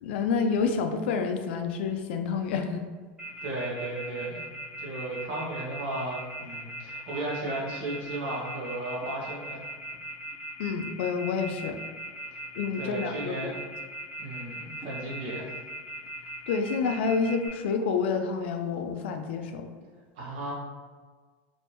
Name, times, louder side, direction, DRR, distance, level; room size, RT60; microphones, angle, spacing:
voice 1, 0.0-2.8 10.6-11.8 12.6-13.5 16.5-19.7, left 5 dB, 70° left, 5 dB, 0.4 m, -28 dB
Telephone, 3.2-17.5, right 1 dB, 5° right, 0.8 m, -39 dB
voice 2, 3.4-4.4 4.8-9.6 12.8-13.6 14.2-15.5 20.2-20.5, right 2 dB, 55° right, -6 dB, 1.0 m, -35 dB
3.3 x 2.6 x 2.9 m, 1.5 s
supercardioid pair, 175°, 6 cm